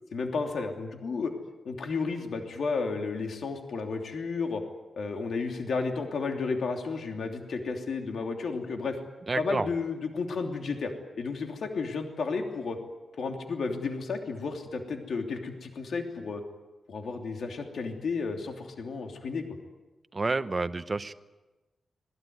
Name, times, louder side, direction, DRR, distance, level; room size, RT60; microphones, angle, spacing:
voice 1, 0.1-1.3 1.6-4.6 5.0-9.0 9.4-10.9 11.2-12.8 13.2-16.4 16.9-19.4, left 4 dB, 60° left, 3 dB, 3.0 m, -32 dB
voice 2, 9.3-9.7 20.1-21.1, right 3 dB, 25° right, 11 dB, 0.9 m, -29 dB
25.5 x 19.5 x 9.5 m, 1.1 s
wide cardioid pair, 170°, 0 cm